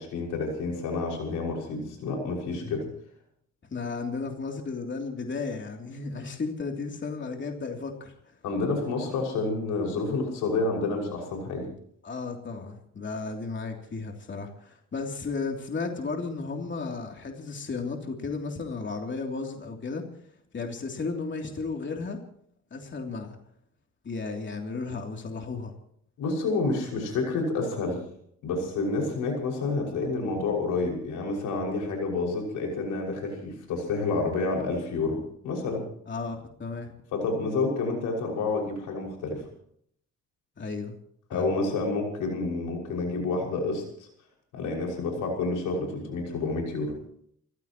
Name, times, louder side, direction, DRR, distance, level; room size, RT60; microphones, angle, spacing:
voice 1, 0.0-2.8 8.4-11.7 26.2-28.0 28.4-35.9 37.1-39.4 41.3-44.1 44.5-47.0, left 3 dB, 90° left, 0 dB, 6.0 m, -29 dB
voice 2, 3.7-8.1 12.0-20.0 20.5-22.2 22.7-23.4 24.0-25.7 36.1-36.9 40.6-40.9 41.3-41.5, left 4 dB, 40° left, 2 dB, 3.1 m, -34 dB
30.0 x 15.5 x 3.1 m, 0.65 s
cardioid pair, 90°, 30 cm